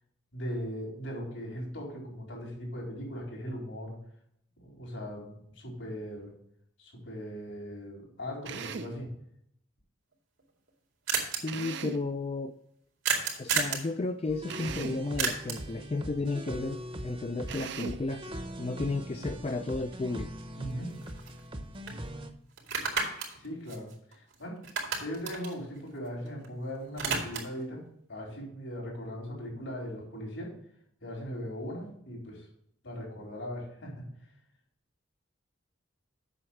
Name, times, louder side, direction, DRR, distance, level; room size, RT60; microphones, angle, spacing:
voice 1, 0.3-4.0 4.6-6.3 6.8-9.1 20.6-20.9 23.4-23.9 24.1-24.6 25.0-27.8 28.1-30.5 31.0-32.5 32.8-34.0, equal, 80° left, -1 dB, 4.3 m, -39 dB
Drill, 8.4-9.0 11.5-12.1 14.5-15.1 17.5-18.1, right 6 dB, 60° right, 0.6 m, -39 dB
sound 1, 10.1-10.2 10.4-10.5 10.7-10.8 11.1-11.4 13.0-13.9 15.2-15.7 19.9-20.0 20.4-21.6 21.9-22.0 22.6-24.3 24.6-26.5 26.7-27.6, right 5 dB, 90° right, 2.4 m, -32 dB
voice 2, 11.4-12.5 13.4-20.3, left 3 dB, 30° left, 7 dB, 0.4 m, -33 dB
sound 2, 14.3-22.3, equal, 25° right, 0.8 m, -41 dB
8.0 x 6.3 x 5.9 m, 0.73 s
head